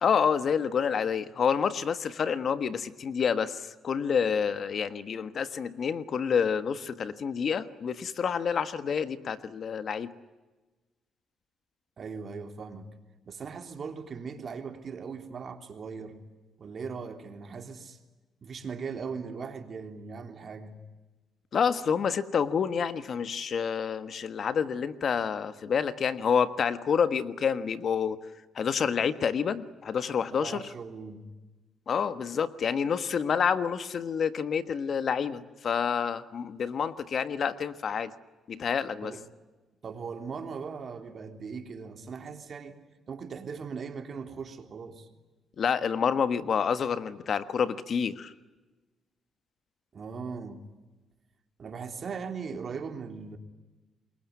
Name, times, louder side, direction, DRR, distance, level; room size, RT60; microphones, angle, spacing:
voice 1, 0.0-10.1 21.5-28.2 28.5-30.6 31.9-38.1 38.5-39.1 45.6-48.3, left 6 dB, 55° left, 12 dB, 1.4 m, -28 dB
voice 2, 12.0-12.9 13.3-16.2 16.6-18.0 18.4-20.8 30.3-31.3 39.0-39.2 39.8-42.8 43.1-45.1 49.9-50.6 51.6-53.4, right 5 dB, 50° right, 6 dB, 3.5 m, -39 dB
28.0 x 22.0 x 9.4 m, 1.2 s
cardioid pair, 90°, 0 cm